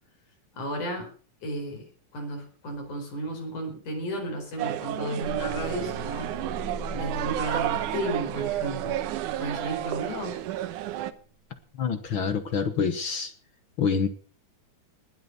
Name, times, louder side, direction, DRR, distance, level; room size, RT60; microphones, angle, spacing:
voice 1, 0.5-1.1 1.4-6.4 6.9-9.0 9.4-10.4, right 1 dB, 80° left, 2 dB, 6.1 m, -33 dB
sound 1, 4.6-11.1, right 13 dB, 85° right, 2.4 m, -31 dB
sound 2, 5.2-11.2, right 1 dB, 35° right, 8.3 m, -40 dB
voice 2, 11.8-13.3 13.8-14.1, left 6 dB, 55° left, 10 dB, 1.7 m, -26 dB
20.5 x 8.3 x 6.9 m, 0.42 s
omnidirectional pair, 3.5 m